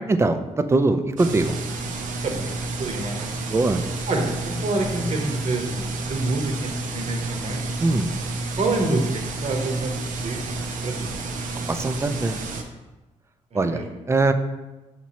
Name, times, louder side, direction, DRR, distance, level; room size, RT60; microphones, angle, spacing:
voice 1, 0.1-1.6 3.5-3.8 7.8-8.1 11.7-12.4 13.5-14.3, right 2 dB, 20° right, 9 dB, 0.4 m, -22 dB
sound 1, 1.2-12.6, right 2 dB, 75° right, 0.5 m, -30 dB
voice 2, 2.8-3.3 4.1-7.6 8.6-9.1 9.4-9.9 10.2-10.4 10.8-11.1 13.5-13.8, right 2 dB, 50° right, 2 dB, 0.9 m, -27 dB
5.8 x 3.0 x 2.8 m, 1.1 s
cardioid pair, 70°, 13 cm